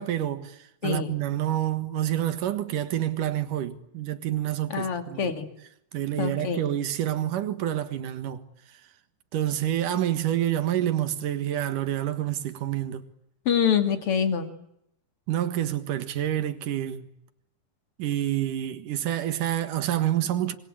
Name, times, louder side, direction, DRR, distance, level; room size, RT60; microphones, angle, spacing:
voice 1, 0.0-5.3 5.9-8.4 9.3-13.0 15.3-17.1 18.0-20.6, right 12 dB, 65° right, 2.9 m, -28 dB
voice 2, 4.7-5.5 6.2-6.6 13.5-14.5, left 7 dB, 40° left, 2.9 m, -25 dB
26.0 x 24.5 x 8.8 m
omnidirectional pair, 4.4 m